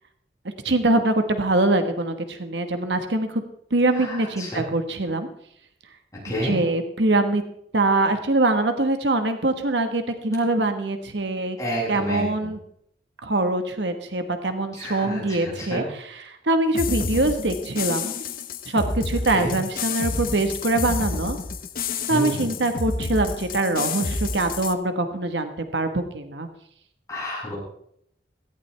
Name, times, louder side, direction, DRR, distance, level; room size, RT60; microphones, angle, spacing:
voice 1, 0.6-3.4 3.7-5.3 6.4-7.4 7.7-11.6 11.9-12.6 13.2-18.1 18.7-21.4 22.1-26.5, right 2 dB, 75° right, 7 dB, 1.4 m, -23 dB
voice 2, 3.9-4.6 6.2-6.5 11.6-12.2 14.8-15.8 19.3-19.5 22.1-22.7 27.1-27.5, equal, 20° left, -6 dB, 7.2 m, -30 dB
sound 1, 16.7-24.7, left 4 dB, 50° left, 0.9 m, -29 dB
17.5 x 15.0 x 3.4 m, 0.69 s
head